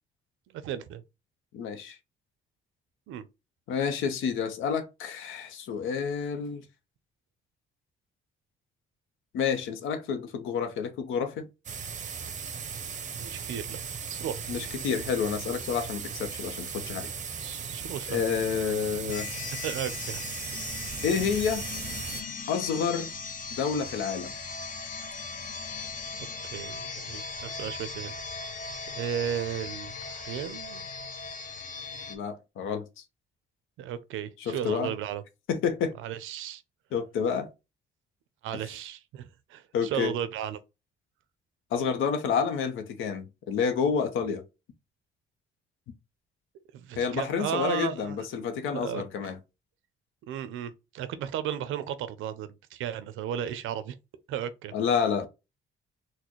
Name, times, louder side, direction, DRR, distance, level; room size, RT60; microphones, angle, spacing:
voice 1, 0.6-1.0 3.1-3.3 13.1-13.8 14.1-14.4 17.4-18.2 19.6-20.2 26.2-28.1 28.9-30.8 33.8-35.2 36.0-36.6 38.4-40.6 46.7-48.2 48.7-49.0 50.3-53.9 54.3-54.7, right 10 dB, 85° right, 0.5 m, -35 dB
voice 2, 1.5-2.0 3.7-6.6 9.3-11.5 14.5-17.1 18.1-19.3 21.0-21.6 22.5-23.1 23.5-24.3 32.1-32.8 34.4-34.9 35.5-35.9 36.9-37.5 39.7-40.1 41.7-44.4 47.0-49.4 54.7-55.3, left 6 dB, 85° left, 0.6 m, -29 dB
sound 1, 11.7-22.2, right 6 dB, 40° right, 0.6 m, -37 dB
sound 2, 19.1-32.2, left 4 dB, 40° left, 0.7 m, -38 dB
4.1 x 2.1 x 2.9 m
cardioid pair, 90°, 20 cm